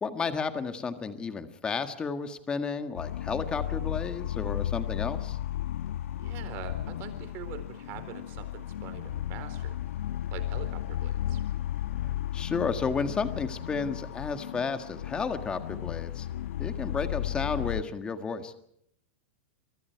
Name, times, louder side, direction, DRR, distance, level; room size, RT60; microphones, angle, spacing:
voice 1, 0.0-5.4 12.0-16.3 16.6-18.5, left 5 dB, 15° left, 8 dB, 1.7 m, -32 dB
sound 1, 2.9-17.8, left 12 dB, 80° left, 1.1 m, -34 dB
voice 2, 6.2-9.8 10.3-11.4, right 9 dB, 35° right, 10 dB, 4.1 m, -43 dB
29.5 x 24.0 x 4.7 m, 0.69 s
supercardioid pair, 160°, 7 cm